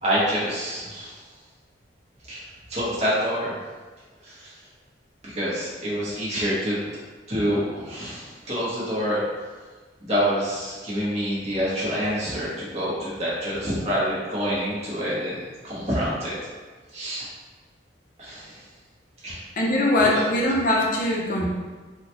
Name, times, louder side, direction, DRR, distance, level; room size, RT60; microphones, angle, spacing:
voice 1, 0.0-1.1 2.3-2.4 2.7-3.5 4.2-4.5 5.3-6.8 7.3-9.2 10.0-16.4 16.9-17.2 18.2-18.5 19.2-19.4, equal, 35° right, -8 dB, 0.9 m, -27 dB
voice 2, 19.6-21.5, left 1 dB, 45° left, -2 dB, 0.6 m, -21 dB
3.8 x 2.2 x 2.9 m, 1.4 s
head